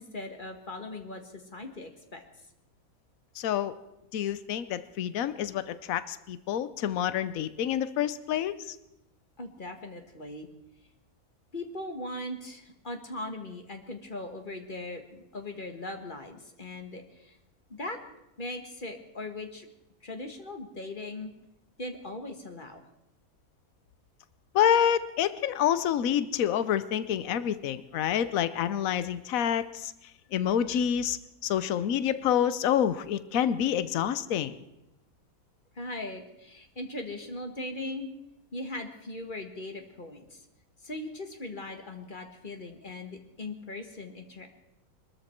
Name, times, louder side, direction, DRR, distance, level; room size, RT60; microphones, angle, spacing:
voice 1, 0.0-2.2 9.4-10.5 11.5-17.4 17.7-18.0 18.4-19.7 20.0-21.3 21.8-22.8 35.7-38.1 38.5-40.4 40.8-44.5, left 2 dB, 35° left, 5 dB, 1.6 m, -39 dB
voice 2, 3.4-3.7 4.1-8.7 24.5-29.9 30.3-34.6, left 9 dB, 70° left, 14 dB, 1.2 m, -27 dB
22.5 x 13.5 x 4.4 m, 0.88 s
omnidirectional pair, 1.6 m